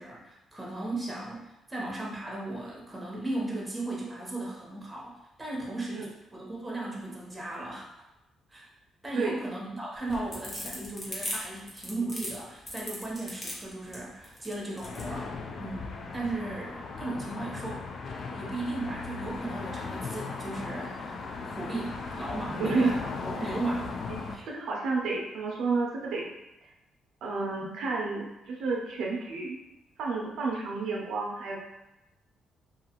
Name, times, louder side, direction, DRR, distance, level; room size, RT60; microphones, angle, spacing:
voice 1, 0.0-7.9 8.5-8.7 9.0-15.3 15.6-17.9 18.2-21.2 21.4-24.0 24.3-24.4, right 2 dB, 15° right, -4 dB, 0.9 m, -36 dB
sound 1, 10.0-15.1, left 1 dB, 25° left, 0.9 m, -38 dB
sound 2, 14.8-24.4, left 4 dB, 55° left, 0.3 m, -37 dB
voice 2, 22.6-23.0 23.4-23.6 24.1-24.2 24.4-26.3 27.2-29.6 30.0-31.6, right 3 dB, 80° right, -1 dB, 0.5 m, -31 dB
2.5 x 2.3 x 2.9 m, 0.97 s
cardioid pair, 90°, 0 cm